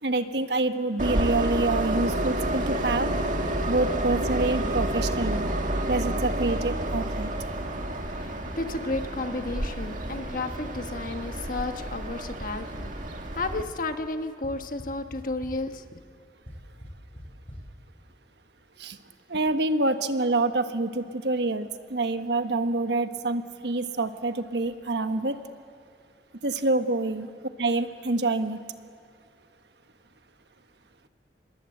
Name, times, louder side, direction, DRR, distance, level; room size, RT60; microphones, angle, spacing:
voice 1, 0.0-3.1 3.7-5.5 5.9-7.3 18.8-19.0 19.3-25.4 26.4-27.3 27.6-28.6, right 2 dB, 70° right, 8 dB, 1.3 m, -26 dB
Train, 1.0-13.6, right 1 dB, 45° right, 1.9 m, -29 dB
sound 1, 5.4-5.5 5.9-6.0 6.4-6.5 6.9-7.0 7.4-7.5 7.9-8.0 8.4-8.5 8.9-9.0 9.4-9.5 9.9-10.0 10.4-11.4 12.4-13.5 14.4-14.5 14.8-15.2 15.4-15.5 16.5-16.6 16.8-16.9 17.2-17.3 17.5-17.6, equal, 30° left, 7.6 m, -42 dB
voice 2, 8.1-16.0, left 2 dB, 50° left, 7 dB, 1.3 m, -33 dB
26.5 x 21.5 x 7.9 m, 2.2 s
head